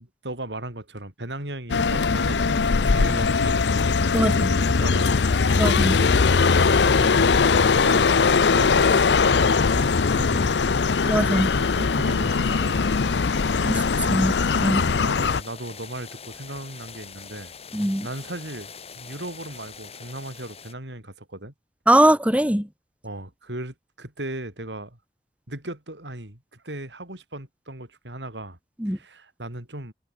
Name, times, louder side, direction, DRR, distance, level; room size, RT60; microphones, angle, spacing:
voice 1, 0.0-5.2 5.5-7.4 7.7-10.9 11.6-12.8 13.9-14.3 14.8-17.6 18.0-18.7 18.9-21.5 23.0-25.0 25.5-28.6 28.8-29.9, right 1 dB, 85° right, 6.3 m, -37 dB
sound 1, 1.7-15.4, left 4 dB, 75° left, 0.6 m, -20 dB
voice 2, 4.1-4.5 5.6-6.0 11.0-11.5 11.8-11.9 13.6-13.8 14.1-14.4 14.6-14.8 17.7-18.1 21.9-22.7 28.8-29.0, right 1 dB, 10° right, 2.9 m, -21 dB
sound 2, 5.0-20.7, left 6 dB, 35° left, 6.5 m, -43 dB
head